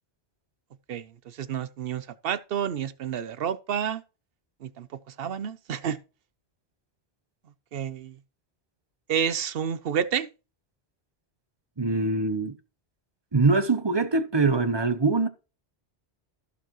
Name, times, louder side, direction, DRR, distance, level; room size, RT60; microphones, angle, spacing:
voice 1, 1.4-4.0 4.6-4.9 5.2-6.0 7.7-8.1 9.1-10.3, right 8 dB, 65° right, 0.9 m, -29 dB
voice 2, 11.8-12.6 13.3-15.3, right 3 dB, 25° right, 0.7 m, -23 dB
14.5 x 6.8 x 3.0 m
omnidirectional pair, 1.1 m